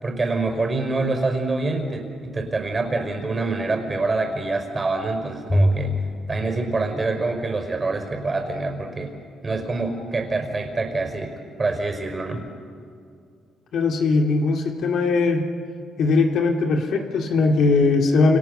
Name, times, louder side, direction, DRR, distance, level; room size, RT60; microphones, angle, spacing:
voice 1, 0.0-6.0 6.3-9.1 9.4-11.3 11.6-12.4, right 3 dB, 30° right, 5 dB, 5.1 m, -26 dB
Bowed string instrument, 5.5-7.9, equal, 20° left, 5.0 m, -25 dB
voice 2, 13.7-15.4 16.0-18.4, left 3 dB, 70° left, 3 dB, 2.4 m, -20 dB
28.5 x 28.5 x 6.8 m, 2.3 s
cardioid pair, 90°, 0 cm